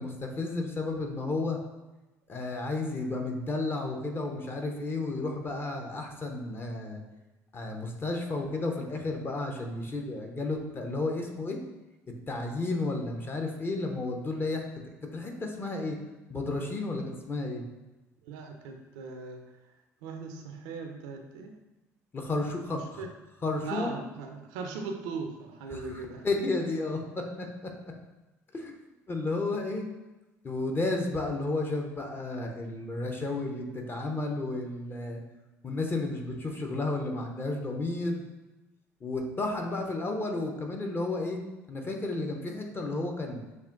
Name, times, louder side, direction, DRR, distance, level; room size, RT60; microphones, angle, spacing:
voice 1, 0.0-1.6 2.3-7.0 7.5-11.6 12.3-14.6 15.1-16.0 16.3-17.6 22.1-23.0 23.4-23.9 25.7-27.7 28.5-28.7 29.1-29.9 30.4-35.2 35.6-38.2 39.0-41.4 41.7-43.4, left 2 dB, 25° left, 2 dB, 0.8 m, -32 dB
voice 2, 18.2-19.5 20.0-21.6 22.7-23.1 23.7-26.3, right 4 dB, 65° right, 4 dB, 0.5 m, -39 dB
6.5 x 2.9 x 2.5 m, 1.1 s
figure-of-eight pair, 55°, 8 cm